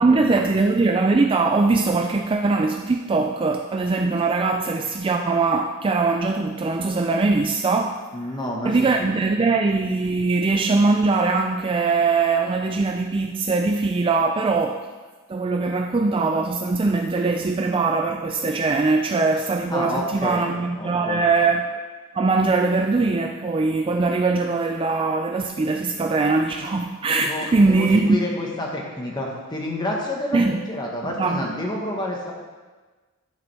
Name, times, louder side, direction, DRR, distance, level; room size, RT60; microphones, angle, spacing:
voice 1, 0.0-8.1 8.6-14.9 15.3-21.8 22.1-28.2 30.3-30.6 31.0-31.5, right 3 dB, 25° right, 3 dB, 0.3 m, -21 dB
voice 2, 8.1-9.1 19.7-20.4 20.8-21.2 27.1-32.3, left 1 dB, 20° left, -1 dB, 1.3 m, -29 dB
10.5 x 6.9 x 3.4 m, 1.3 s
head